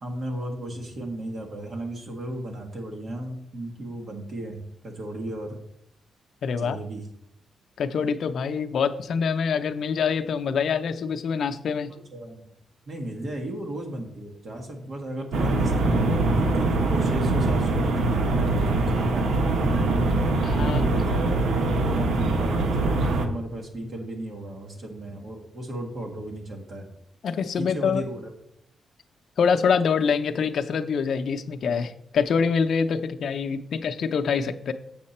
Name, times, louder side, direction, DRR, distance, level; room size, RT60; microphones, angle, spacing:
voice 1, 0.0-5.6 6.6-7.1 11.9-12.5 12.9-20.0 20.7-26.9 27.6-28.3, right 1 dB, 45° right, 2 dB, 1.6 m, -35 dB
voice 2, 6.4-6.8 7.8-11.9 20.4-20.8 27.2-28.0 29.4-34.7, left 6 dB, 65° left, 8 dB, 0.5 m, -25 dB
sound 1, 15.3-23.3, right 2 dB, 85° right, 0.9 m, -23 dB
7.3 x 6.6 x 4.3 m, 0.74 s
wide cardioid pair, 135°, 0 cm